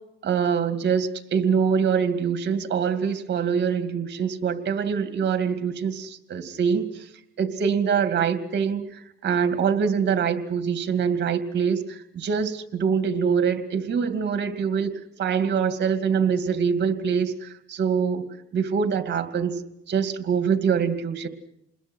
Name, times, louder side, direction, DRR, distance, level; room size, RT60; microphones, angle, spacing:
voice 1, 0.2-7.1 7.4-14.9 15.2-18.2 18.5-19.6 19.9-21.3, right 6 dB, 60° right, 8 dB, 2.4 m, -24 dB
28.5 x 21.0 x 6.4 m, 0.81 s
cardioid pair, 90°, 20 cm